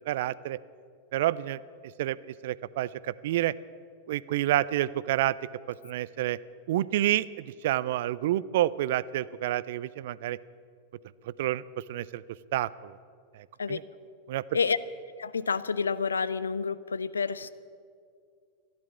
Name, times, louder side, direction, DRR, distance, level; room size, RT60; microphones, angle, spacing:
voice 1, 0.1-0.6 1.1-1.6 2.0-2.2 2.4-3.5 4.1-5.4 5.8-6.4 6.7-10.4 11.4-11.6 11.9-12.2 12.5-13.0 13.4-13.8 14.3-14.4, right 14 dB, 55° right, 20 dB, 0.4 m, -28 dB
voice 2, 15.2-17.5, left 5 dB, 75° left, 17 dB, 0.5 m, -29 dB
13.5 x 11.5 x 8.8 m, 2.3 s
figure-of-eight pair, 90°, 0 cm